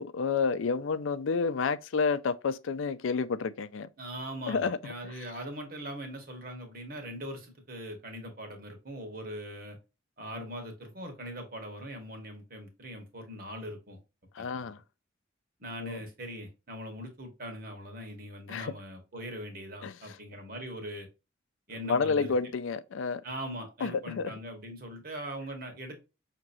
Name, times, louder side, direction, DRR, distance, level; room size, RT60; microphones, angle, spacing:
voice 1, 0.0-3.9 4.5-4.8 14.4-14.8 15.8-16.0 18.5-18.7 19.8-19.9 21.8-23.2 23.8-24.3, left 5 dB, 75° left, 0.4 m, -30 dB
voice 2, 4.0-9.8 10.2-14.0 14.4-14.7 15.6-21.1 21.7-22.3 23.2-26.0, equal, 45° right, 1.4 m, -41 dB
6.1 x 2.9 x 2.7 m
head